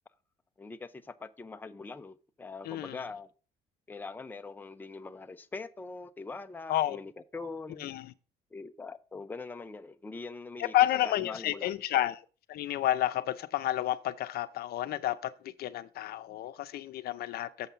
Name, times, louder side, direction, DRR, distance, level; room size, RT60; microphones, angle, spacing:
voice 1, 0.6-3.3 3.9-7.9 8.5-10.7 11.0-11.7, left 3 dB, 10° left, 0.5 m, -42 dB
voice 2, 2.6-3.0 6.7-7.0 7.8-8.1 10.6-12.2 12.5-15.3 15.6-17.7, left 13 dB, 65° left, 0.6 m, -30 dB
7.2 x 5.3 x 5.7 m
cardioid pair, 110°, 17 cm